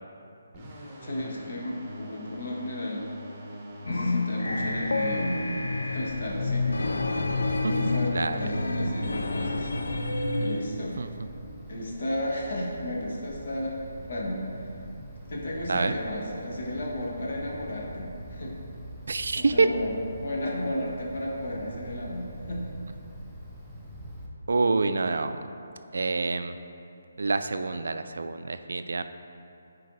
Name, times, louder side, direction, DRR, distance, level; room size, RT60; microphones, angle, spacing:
sound 1, 0.5-8.2, equal, 20° right, 1.2 m, -43 dB
voice 1, 1.0-3.1 3.9-5.6 5.9-6.7 7.7-11.0 11.7-14.7 15.3-18.5 19.3-22.7, left 1 dB, 60° left, -3 dB, 1.2 m, -33 dB
sound 2, 3.9-10.7, left 3 dB, 85° left, 0.4 m, -29 dB
Wind, 5.9-24.3, right 1 dB, ahead, 0.7 m, -43 dB
voice 2, 19.1-19.7 24.5-25.4 25.9-26.6 27.2-29.0, right 3 dB, 75° right, 10 dB, 0.3 m, -26 dB
10.0 x 4.5 x 2.5 m, 2.6 s
hypercardioid pair, 155°, 0 cm